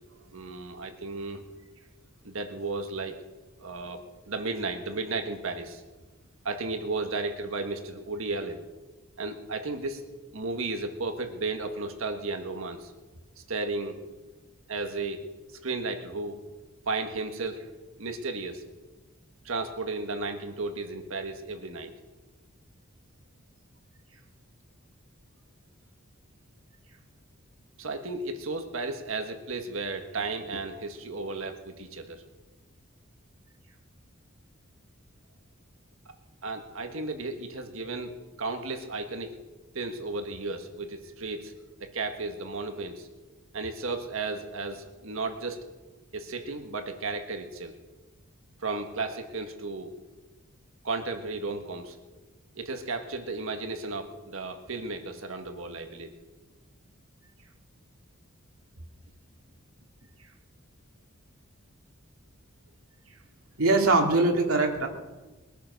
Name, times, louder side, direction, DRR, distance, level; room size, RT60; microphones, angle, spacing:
voice 1, 0.3-1.4 2.2-3.2 3.6-5.8 6.4-8.6 9.2-10.0 10.3-12.9 13.5-14.0 14.7-15.2 15.5-16.4 16.9-17.7 18.0-18.6 19.4-21.9 27.8-32.2 36.4-39.4 39.7-41.5 41.8-43.1 43.5-45.6 46.1-47.7 48.6-49.9 50.8-52.0 52.5-56.1 60.2-60.3 63.1-63.2, right 3 dB, 70° right, 6 dB, 1.6 m, -34 dB
voice 2, 63.6-64.9, right 2 dB, 90° right, 2 dB, 2.6 m, -22 dB
21.5 x 10.0 x 6.5 m, 1.2 s
head